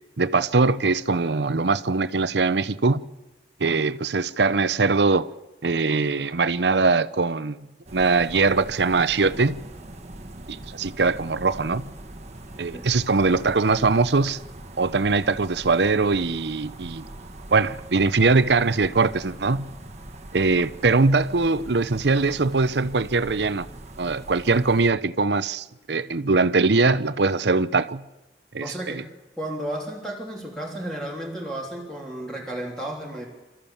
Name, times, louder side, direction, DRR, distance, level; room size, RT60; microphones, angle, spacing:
voice 1, 0.2-3.0 3.6-5.3 5.6-7.6 7.9-9.5 10.5-11.9 12.6-14.4 14.8-17.0 17.5-19.7 20.3-23.7 24.0-28.0 28.5-29.0, right 3 dB, 75° right, 0.8 m, -22 dB
sound 1, 7.9-24.9, right 1 dB, 40° right, 1.5 m, -42 dB
voice 2, 28.6-29.1 29.4-33.3, right 1 dB, 5° left, 3.2 m, -33 dB
27.0 x 14.0 x 7.2 m
head